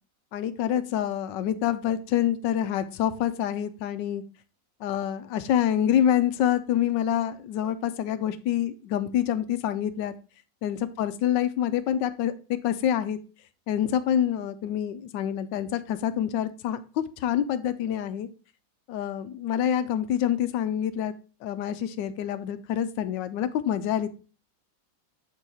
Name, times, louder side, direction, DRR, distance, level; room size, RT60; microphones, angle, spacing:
voice 1, 0.3-4.2 4.8-10.1 10.6-12.3 12.6-13.2 13.7-18.3 18.9-21.1 21.4-24.1, left 10 dB, 75° left, 12 dB, 1.2 m, -26 dB
6.4 x 4.5 x 4.0 m, 0.35 s
omnidirectional pair, 2.0 m